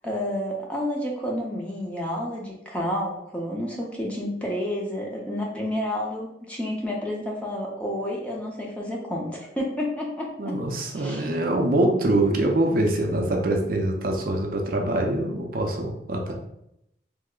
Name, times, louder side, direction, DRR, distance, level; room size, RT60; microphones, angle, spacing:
voice 1, 0.0-10.6 11.0-11.3 13.0-13.1, left 1 dB, 5° left, -2 dB, 0.5 m, -30 dB
voice 2, 10.4-16.3, right 1 dB, 50° right, 2 dB, 0.4 m, -24 dB
3.1 x 2.0 x 3.6 m, 0.80 s
head